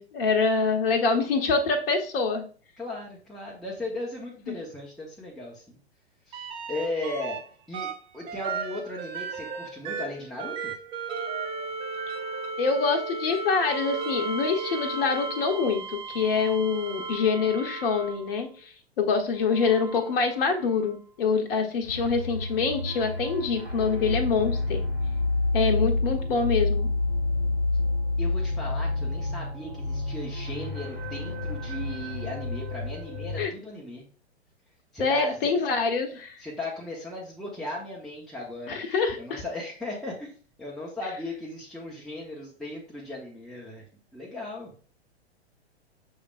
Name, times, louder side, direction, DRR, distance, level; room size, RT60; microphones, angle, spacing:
voice 1, 0.0-2.5 4.5-4.6 12.6-18.7 19.0-24.8 25.5-26.9 33.4-33.5 35.0-36.4 38.7-39.4, left 5 dB, 55° left, 4 dB, 0.9 m, -25 dB
voice 2, 2.8-5.8 6.3-7.4 7.7-10.7 28.2-34.0 34.9-35.5 36.4-38.8 39.2-40.3 40.6-43.8 44.1-44.9, left 2 dB, ahead, -6 dB, 0.9 m, -37 dB
sound 1, 6.3-7.4 7.7-18.5 19.4-20.9 22.6-22.7, right 4 dB, 15° right, 0.4 m, -35 dB
sound 2, 21.8-33.5, left 2 dB, 85° right, 2.4 m, -29 dB
6.3 x 3.4 x 2.4 m, 0.41 s
figure-of-eight pair, 105°, 33 cm